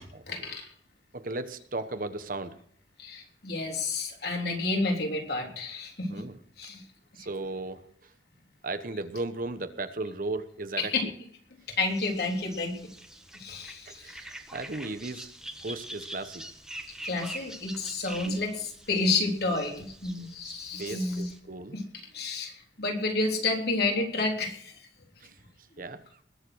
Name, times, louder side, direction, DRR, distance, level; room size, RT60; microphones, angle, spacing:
voice 1, 0.3-0.7 3.0-6.2 6.6-6.8 7.2-7.3 10.8-11.3 11.7-12.7 13.3-14.2 17.0-21.3 21.7-24.9, left 3 dB, 55° left, 1 dB, 3.6 m, -30 dB
voice 2, 1.1-2.6 6.1-6.4 7.1-8.1 8.6-10.9 13.9-15.3 15.6-16.5 20.8-21.8 25.2-25.4 25.8-26.2, right 2 dB, 45° right, 11 dB, 1.0 m, -36 dB
sound 1, 11.9-21.4, right 1 dB, 5° right, 1.3 m, -45 dB
21.0 x 7.4 x 6.3 m, 0.63 s
head